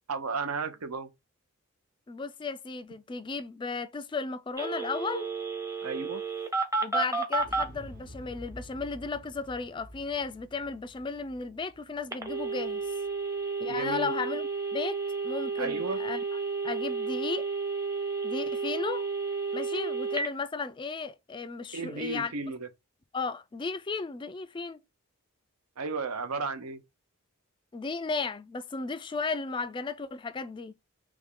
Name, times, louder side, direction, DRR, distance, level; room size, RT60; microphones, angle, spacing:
voice 1, 0.1-1.1 5.8-6.2 13.7-14.1 15.6-16.0 21.7-22.7 25.8-26.8, right 4 dB, 85° right, 0.8 m, -34 dB
voice 2, 2.1-5.3 6.8-12.9 13.6-15.0 15.2-16.2 16.6-17.5 18.2-19.0 19.5-22.3 23.1-24.8 27.7-30.7, left 4 dB, 20° left, 0.3 m, -34 dB
Telephone, 4.6-7.7 12.1-20.3, right 4 dB, 15° right, 0.7 m, -31 dB
Explosion, 7.4-13.4 13.7-13.8, equal, 45° right, 1.0 m, -49 dB
3.5 x 3.1 x 3.7 m
head